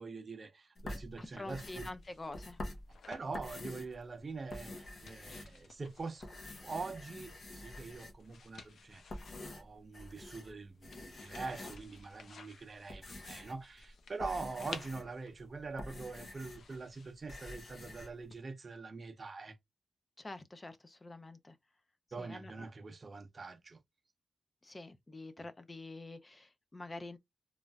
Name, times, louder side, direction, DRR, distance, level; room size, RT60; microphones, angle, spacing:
voice 1, 0.0-1.9 3.1-6.3 6.6-9.2 9.5-19.6 22.1-23.8, right 4 dB, 40° right, 0.6 m, -44 dB
sound 1, 0.8-4.0 4.4-5.9 6.2-8.4 8.9-10.5 10.8-12.0 12.6-16.8 17.0-18.1, left 1 dB, 55° left, 0.8 m, -47 dB
sound 2, 1.1-18.3, left 5 dB, 80° left, 0.5 m, -56 dB
voice 2, 1.2-2.6 20.2-21.6 22.2-22.7 24.6-27.2, left 2 dB, 25° left, 0.4 m, -47 dB
3.1 x 2.4 x 2.2 m
wide cardioid pair, 120°, 0 cm